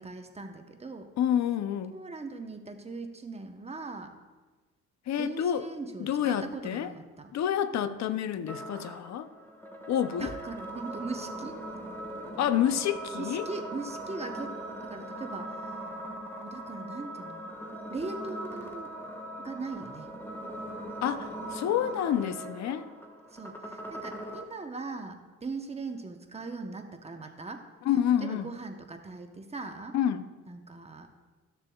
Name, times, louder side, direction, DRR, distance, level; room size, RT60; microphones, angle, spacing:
voice 1, 0.0-1.1 1.9-4.1 5.2-7.3 10.2-11.6 12.5-12.6 13.2-14.6 14.8-15.8 16.4-17.5 17.9-18.9 19.4-20.1 23.3-27.6 28.2-29.9 30.5-31.1, right 3 dB, 20° right, 5 dB, 0.8 m, -40 dB
voice 2, 1.2-2.0 5.1-5.7 6.0-6.9 7.3-9.3 9.9-10.3 12.4-13.5 21.0-22.9 27.9-28.5 29.9-30.2, left 10 dB, 65° left, 12 dB, 0.6 m, -28 dB
sound 1, 8.5-24.5, right 1 dB, 5° left, 1.2 m, -40 dB
14.0 x 6.6 x 2.3 m, 1.3 s
cardioid pair, 90°, 30 cm